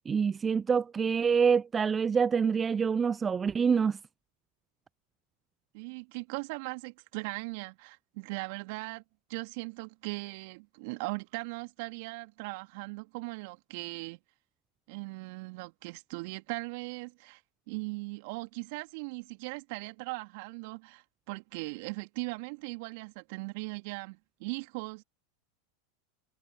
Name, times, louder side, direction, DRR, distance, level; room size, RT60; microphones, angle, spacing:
voice 1, 0.1-4.0, right 6 dB, 25° right, 0.4 m, -26 dB
voice 2, 5.7-9.0 9.3-14.2 14.9-17.4 17.7-25.0, right 27 dB, 60° right, 2.7 m, -39 dB
hypercardioid pair, 90°, 0 cm